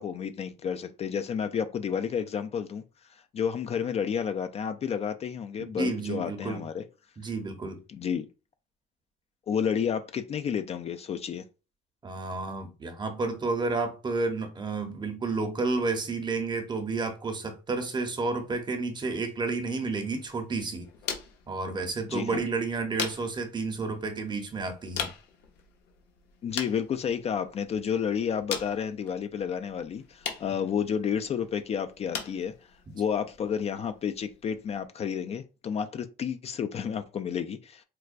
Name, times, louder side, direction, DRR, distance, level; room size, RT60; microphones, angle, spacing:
voice 1, 0.0-2.8 3.1-6.8 7.9-8.3 9.5-11.4 22.1-22.5 26.4-32.5 32.9-37.8, left 7 dB, 40° left, 0.4 m, -31 dB
voice 2, 5.6-6.6 7.2-7.8 12.0-20.9 21.5-25.1, right 3 dB, 25° right, 0.7 m, -31 dB
sound 1, 19.8-34.9, left 7 dB, 85° left, 0.8 m, -42 dB
4.4 x 2.2 x 2.4 m
cardioid pair, 110°, 17 cm